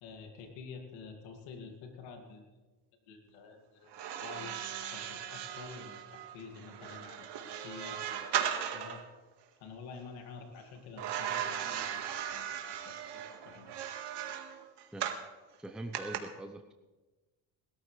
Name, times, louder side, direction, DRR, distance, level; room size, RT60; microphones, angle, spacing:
voice 1, 0.0-2.5 3.1-3.9 4.2-7.3 7.6-8.4 8.7-9.0 9.6-13.7, left 4 dB, 85° left, 3 dB, 2.4 m, -49 dB
sound 1, 3.9-9.0 11.0-15.3 15.9-16.2, right 9 dB, 60° right, 1.9 m, -37 dB
voice 2, 15.6-16.7, right 1 dB, ahead, 5 dB, 0.8 m, -43 dB
20.5 x 13.5 x 3.3 m, 1.2 s
supercardioid pair, 90°, 46 cm